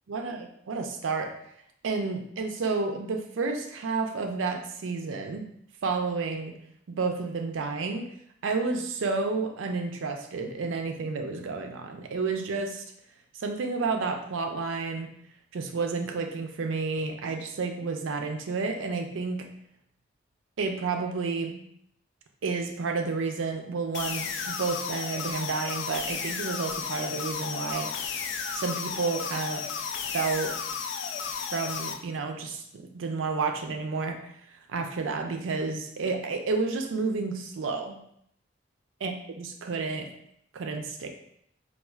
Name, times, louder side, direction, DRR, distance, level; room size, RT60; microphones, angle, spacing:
voice 1, 0.1-1.4 1.8-5.5 5.8-6.5 6.9-8.1 8.4-12.8 13.4-15.1 15.5-19.5 20.6-21.6 22.4-27.9 28.5-29.6 30.1-30.6 31.5-34.2 34.7-38.0 39.0-40.1 40.5-41.1, right 4 dB, 90° right, 5 dB, 0.4 m, -30 dB
sound 1, 23.9-31.9, left 6 dB, 70° left, 0.3 m, -33 dB
4.3 x 2.3 x 2.3 m, 0.70 s
head